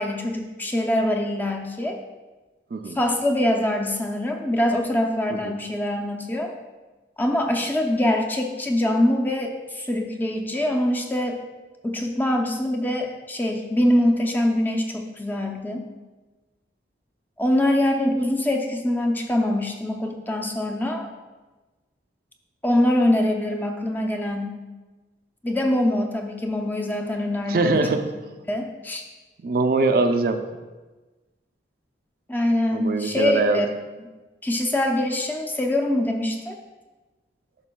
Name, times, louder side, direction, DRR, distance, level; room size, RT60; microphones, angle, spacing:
voice 1, 0.0-2.0 3.0-6.5 7.2-11.4 11.8-15.9 17.4-21.1 22.6-24.5 25.4-28.0 28.5-29.0 32.3-33.7 34.4-36.6, left 1 dB, 10° left, 2 dB, 0.5 m, -24 dB
voice 2, 27.5-28.0 29.4-30.4 32.7-33.6, right 3 dB, 55° right, 7 dB, 0.4 m, -22 dB
11.0 x 5.7 x 2.2 m, 1.2 s
head